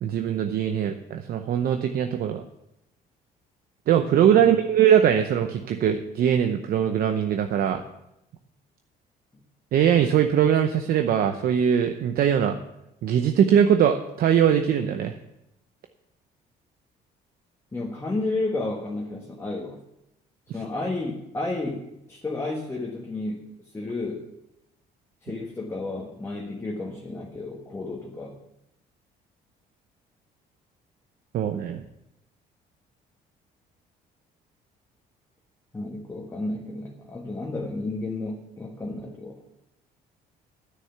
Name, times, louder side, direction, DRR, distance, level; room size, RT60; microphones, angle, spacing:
voice 1, 0.0-2.4 3.9-7.8 9.7-12.6 13.0-15.1 31.3-31.8, right 9 dB, 60° right, 7 dB, 0.8 m, -21 dB
voice 2, 17.7-19.8 20.5-24.2 25.2-28.4 35.7-39.4, left 2 dB, 15° left, -1 dB, 1.5 m, -32 dB
10.0 x 9.6 x 5.8 m, 0.86 s
cardioid pair, 110°, 17 cm